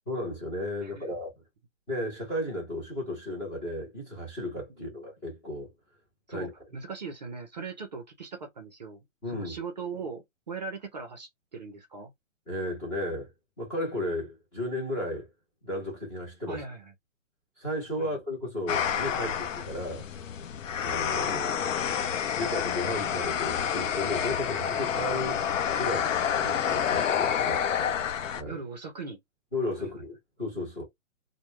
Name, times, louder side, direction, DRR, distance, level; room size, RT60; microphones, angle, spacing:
voice 1, 0.1-1.3 1.9-5.7 6.3-6.5 9.2-9.6 12.5-13.3 13.6-15.3 15.6-16.6 17.6-20.1 20.8-21.6 22.4-25.4 25.8-27.6 28.4-28.6 29.5-30.8, left 1 dB, 10° left, 0.6 m, -34 dB
voice 2, 0.8-1.2 4.9-5.0 6.3-6.5 6.7-9.0 9.3-12.1 16.5-16.9 18.0-18.1 26.9-27.0 28.5-29.2 29.8-29.9, right 4 dB, 35° right, 0.5 m, -40 dB
sound 1, 18.7-28.4, left 8 dB, 70° left, 0.6 m, -29 dB
2.2 x 2.1 x 3.0 m
hypercardioid pair, 160°, 39 cm